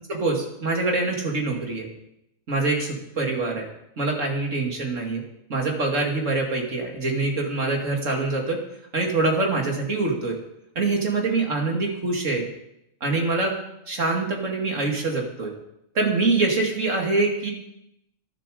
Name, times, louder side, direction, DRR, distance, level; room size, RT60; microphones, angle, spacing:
voice 1, 0.0-1.9 2.5-2.9 3.2-3.7 4.0-5.2 5.5-8.6 8.9-10.4 10.8-12.5 13.0-13.6 13.9-15.5 15.9-17.5, right 3 dB, 70° right, 1 dB, 2.9 m, -24 dB
22.0 x 7.7 x 5.0 m, 0.82 s
omnidirectional pair, 1.4 m